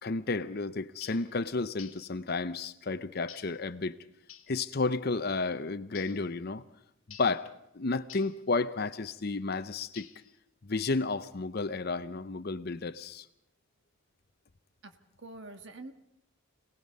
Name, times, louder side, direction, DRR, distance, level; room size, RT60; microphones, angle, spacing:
voice 1, 0.0-4.0 4.5-6.6 7.2-7.5 7.7-10.1 10.6-13.2, left 3 dB, 50° left, 13 dB, 0.7 m, -32 dB
sound 1, 1.0-1.3 1.8-2.1 3.3-3.6 4.3-4.6 5.9-6.2 7.1-7.4 8.1-8.4 10.0-10.4, left 10 dB, 80° left, 1.6 m, -50 dB
voice 2, 14.8-15.9, right 2 dB, 60° right, 7 dB, 1.5 m, -46 dB
26.5 x 19.0 x 5.4 m, 0.80 s
head